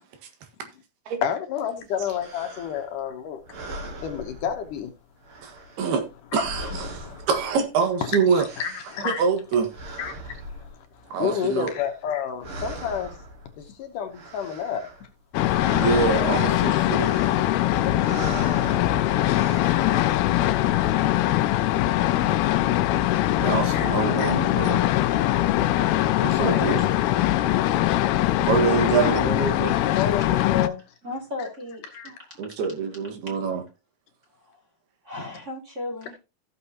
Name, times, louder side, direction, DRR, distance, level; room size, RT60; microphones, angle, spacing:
voice 1, 1.2-3.4 4.0-4.9 6.7-7.2 8.0-8.1 8.3-9.2 10.0-13.2 13.6-14.8 17.8-19.4 23.7-23.9 24.2-24.3 24.8-24.9 26.1-26.7 28.8-28.9 29.8-30.8 31.9-32.1, left 8 dB, 70° left, 2.3 m, -31 dB
sound 1, 2.0-3.0 3.4-5.0 5.2-7.9 8.1-12.1 12.4-13.7 14.0-15.1 15.3-19.9, right 1 dB, 45° right, 2.0 m, -39 dB
voice 2, 5.4-6.1 6.3-8.5 9.0-9.7 11.1-11.7 15.7-17.2 23.4-24.9 26.2-26.9 28.4-29.8 32.4-33.6, right 5 dB, 90° right, 3.6 m, -25 dB
sound 2, 15.3-30.7, left 14 dB, 90° left, 2.6 m, -22 dB
voice 3, 31.0-32.4 34.5-34.6 35.0-36.2, left 2 dB, 20° right, 2.5 m, -36 dB
15.5 x 6.7 x 2.9 m
omnidirectional pair, 4.4 m